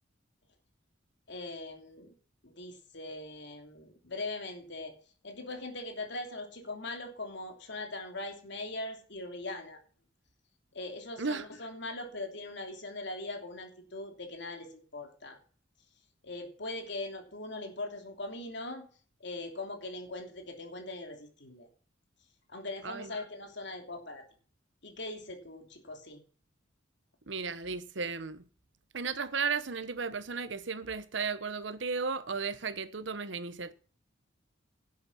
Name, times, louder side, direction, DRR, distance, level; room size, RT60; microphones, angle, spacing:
voice 1, 1.3-2.1 2.4-4.9 5.2-9.8 10.7-15.4 16.2-18.9 19.2-21.7 22.5-24.3 24.8-26.2, left 2 dB, 65° left, 3.0 m, -41 dB
voice 2, 27.3-28.4 28.9-33.7, right 5 dB, 65° right, 1.0 m, -34 dB
11.0 x 8.4 x 6.1 m
head